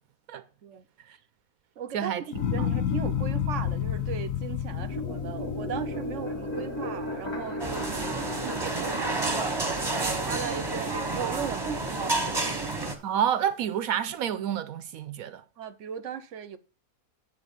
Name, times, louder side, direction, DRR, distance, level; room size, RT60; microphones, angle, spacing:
voice 1, 1.8-12.1 12.5-13.0 15.6-16.6, right 8 dB, 60° right, 1.1 m, -38 dB
sound 1, 2.3-8.7 9.1-9.7, left 9 dB, 65° left, 1.5 m, -31 dB
sound 2, 4.6-11.2, left 1 dB, 85° left, 3.1 m, -37 dB
sound 3, 7.6-12.9, right 2 dB, 20° right, 1.3 m, -29 dB
voice 2, 13.0-15.4, right 9 dB, 75° right, 1.1 m, -29 dB
9.8 x 4.4 x 7.3 m
omnidirectional pair, 1.5 m